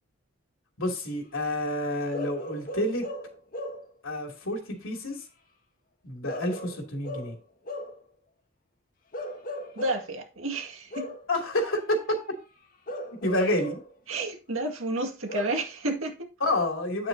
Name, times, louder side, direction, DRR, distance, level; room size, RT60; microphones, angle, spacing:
voice 1, 0.8-3.1 4.0-5.2 6.0-7.3 11.3-12.2 13.2-13.8 16.4-17.1, left 1 dB, 70° left, 2.8 m, -28 dB
Bark / Livestock farm animals working animals, 2.1-3.9 6.3-8.0 9.1-10.1 10.9-11.3 12.9-13.9 15.3-15.7, left 1 dB, 40° left, 1.6 m, -37 dB
voice 2, 9.8-11.1 14.1-16.3, right 2 dB, 70° right, 2.1 m, -31 dB
9.5 x 7.9 x 2.8 m
head